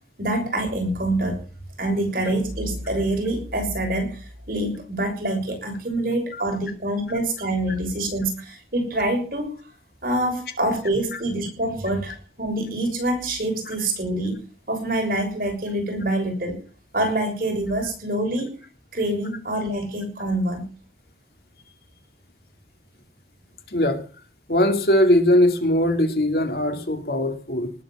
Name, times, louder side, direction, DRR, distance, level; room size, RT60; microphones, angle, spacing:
voice 1, 0.2-1.4 1.8-9.5 10.0-14.4 14.7-16.6 16.9-18.5 18.9-20.7, right 1 dB, 50° right, 3 dB, 6.5 m, -26 dB
voice 2, 23.7-24.0 24.5-27.7, left 1 dB, 60° left, 7 dB, 2.5 m, -20 dB
19.0 x 7.7 x 7.4 m, 0.39 s
head